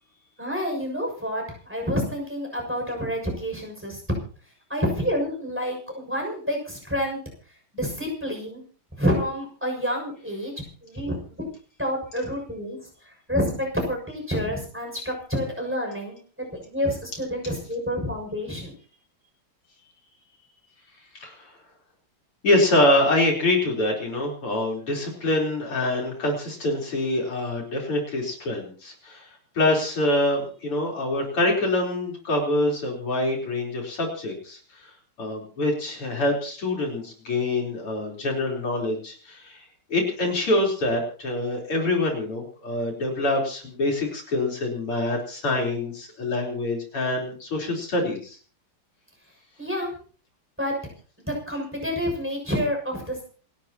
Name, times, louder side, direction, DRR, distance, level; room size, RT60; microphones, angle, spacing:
voice 1, 0.4-1.4 1.7-4.2 4.7-7.2 7.7-8.6 8.9-10.5 10.8-11.4 11.8-12.8 13.3-18.7 49.6-49.9 50.6-50.7 51.3-53.2, equal, 5° right, 1 dB, 6.6 m, -28 dB
voice 2, 21.2-21.5 22.4-29.3 29.6-34.9 35.2-39.6 39.9-48.4, left 1 dB, 80° left, 0 dB, 5.2 m, -25 dB
28.5 x 12.5 x 3.0 m, 0.41 s
omnidirectional pair, 2.4 m